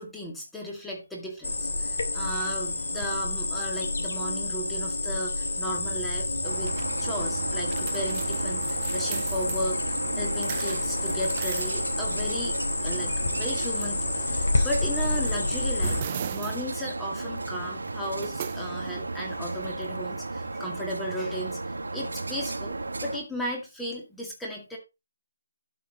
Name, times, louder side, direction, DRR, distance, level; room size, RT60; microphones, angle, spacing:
voice 1, 0.0-9.7 10.1-12.6 12.8-22.8 23.0-24.8, equal, 5° left, -2 dB, 2.2 m, -35 dB
Cricket, 1.4-16.0, left 2 dB, 75° left, 3.2 m, -29 dB
sound 1, 5.8-20.5, right 10 dB, 25° right, 0.7 m, -41 dB
sound 2, 6.4-23.2, right 2 dB, 90° right, 2.4 m, -34 dB
12.0 x 6.0 x 4.1 m, 0.26 s
hypercardioid pair, 170°, 0 cm